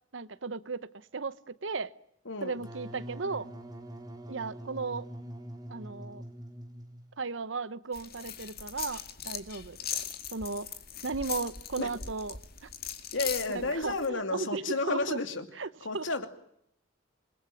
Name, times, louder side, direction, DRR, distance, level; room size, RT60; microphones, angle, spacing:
voice 1, 0.1-1.9 2.4-3.5 4.3-5.1 5.7-6.2 7.2-9.8 10.3-10.7 11.0-12.7 13.5-15.2 15.6-15.7 15.9-16.0, right 4 dB, 70° right, 16 dB, 1.0 m, -35 dB
Wind instrument woodwind instrument, 2.5-7.1, right 1 dB, 20° right, 3.8 m, -44 dB
sound 1, 7.9-14.1, left 8 dB, 50° left, 2.2 m, -39 dB
voice 2, 13.1-15.5 15.8-16.3, left 3 dB, 75° left, 8 dB, 2.6 m, -31 dB
27.5 x 21.0 x 9.1 m, 0.76 s
head